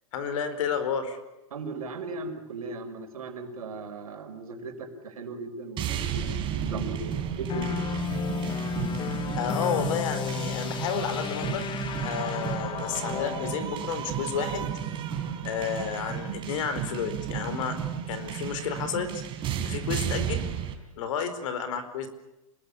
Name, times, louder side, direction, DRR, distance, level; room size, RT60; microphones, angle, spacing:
voice 1, 0.1-1.2 9.4-11.7 12.0-14.7 15.4-17.8 18.1-19.1 19.6-20.5 21.0-22.1, left 7 dB, 65° left, 11 dB, 4.7 m, -31 dB
voice 2, 1.5-7.7, right 3 dB, 90° right, 6 dB, 5.2 m, -37 dB
sound 1, 5.8-20.7, right 9 dB, 30° right, 4.1 m, -33 dB
sound 2, 7.5-13.7, left 7 dB, 25° left, 1.5 m, -33 dB
27.5 x 20.5 x 8.6 m, 0.98 s
hypercardioid pair, 135°, 18 cm